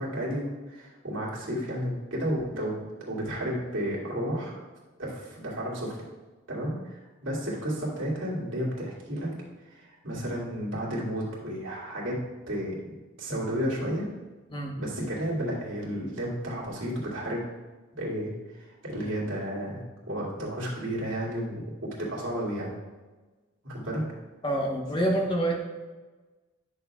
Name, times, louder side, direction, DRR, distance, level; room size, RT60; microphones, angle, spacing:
voice 1, 0.0-4.6 5.0-6.0 6.5-9.3 9.6-12.2 12.5-12.9 13.2-14.1 14.8-17.4 18.0-22.7 23.6-24.0, equal, 85° right, -5 dB, 2.3 m, -32 dB
voice 2, 24.4-25.6, right 1 dB, 25° left, -1 dB, 1.1 m, -27 dB
10.0 x 6.5 x 2.3 m, 1.2 s
head